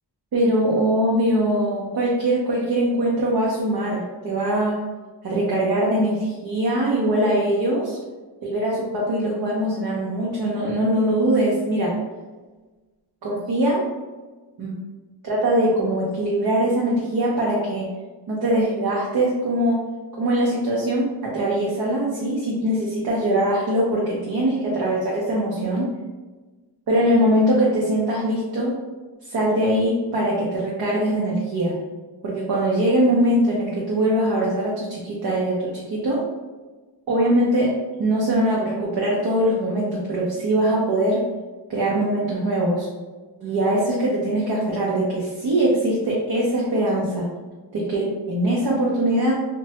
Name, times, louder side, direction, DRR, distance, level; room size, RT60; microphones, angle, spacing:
voice 1, 0.3-4.8 5.2-8.0 8.4-11.9 13.2-13.8 14.6-14.8 15.2-17.9 18.3-19.8 20.1-25.9 26.9-28.8 29.3-31.7 32.2-36.2 37.1-37.7 38.0-41.2 41.7-42.9 43.4-47.3 47.7-49.4, right 1 dB, 60° right, -4 dB, 0.6 m, -22 dB
3.1 x 2.2 x 2.8 m, 1.3 s
wide cardioid pair, 145°, 44 cm